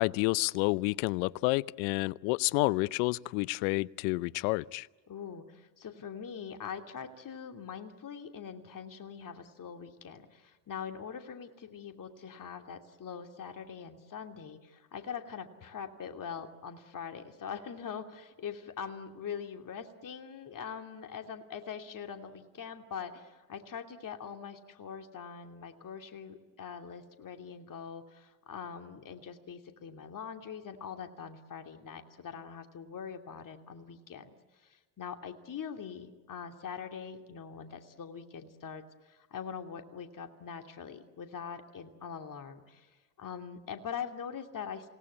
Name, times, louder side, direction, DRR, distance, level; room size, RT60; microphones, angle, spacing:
voice 1, 0.0-4.9, left 23 dB, 75° left, 22 dB, 0.7 m, -29 dB
voice 2, 5.1-34.3 34.7-42.9 43.2-44.9, left 7 dB, 40° left, 5 dB, 2.9 m, -43 dB
28.0 x 18.5 x 9.6 m, 1.4 s
hypercardioid pair, 70°, 49 cm